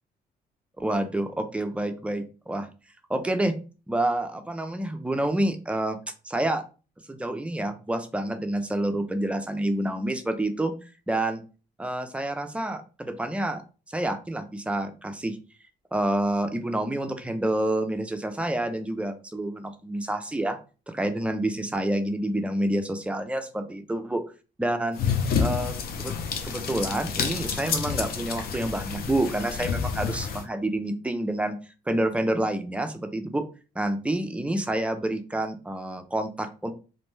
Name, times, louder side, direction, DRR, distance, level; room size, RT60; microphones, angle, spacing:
voice 1, 0.8-2.7 3.1-3.6 3.9-6.0 6.2-6.6 7.1-10.7 11.1-11.4 11.8-13.6 13.9-15.4 15.9-20.6 20.9-24.2 24.6-25.0 25.4-25.7 26.0-26.1 26.4-31.6 31.9-33.5 33.8-36.7, right 1 dB, 5° right, 7 dB, 0.4 m, -28 dB
sound 1, 24.9-30.4, left 6 dB, 65° left, 0.5 m, -29 dB
2.6 x 2.1 x 3.1 m, 0.34 s
cardioid pair, 100°, 16 cm